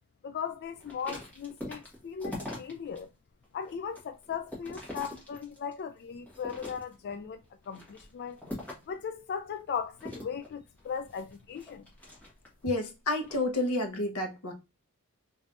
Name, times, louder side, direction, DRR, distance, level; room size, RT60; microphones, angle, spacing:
voice 1, 0.2-3.1 3.5-8.4 8.9-11.8, left 7 dB, 50° left, 0.3 m, -38 dB
sound 1, 0.8-3.0 3.4-5.8 6.2-7.1 7.6-9.0 10.0-12.6 13.1-13.4, left 1 dB, 5° left, 1.4 m, -43 dB
voice 2, 12.6-14.5, left 2 dB, 90° left, 1.0 m, -30 dB
3.3 x 3.1 x 2.5 m
head